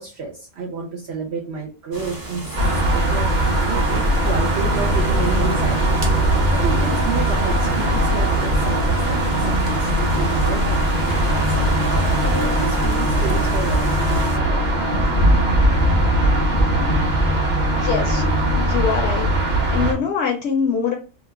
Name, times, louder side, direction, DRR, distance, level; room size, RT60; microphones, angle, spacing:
voice 1, 0.0-2.4 2.7-6.0 6.5-14.7, right 5 dB, 65° right, -1 dB, 0.8 m, -31 dB
sound 1, 1.9-14.4, right 1 dB, 25° right, 0.5 m, -34 dB
sound 2, 2.5-19.9, right 1 dB, 40° right, 1.0 m, -20 dB
sound 3, 11.3-17.3, equal, 45° left, 0.5 m, -23 dB
voice 2, 17.7-18.2 18.6-19.3 19.7-20.9, left 6 dB, 65° left, 2 dB, 0.8 m, -23 dB
2.9 x 2.3 x 3.3 m, 0.34 s
omnidirectional pair, 1.3 m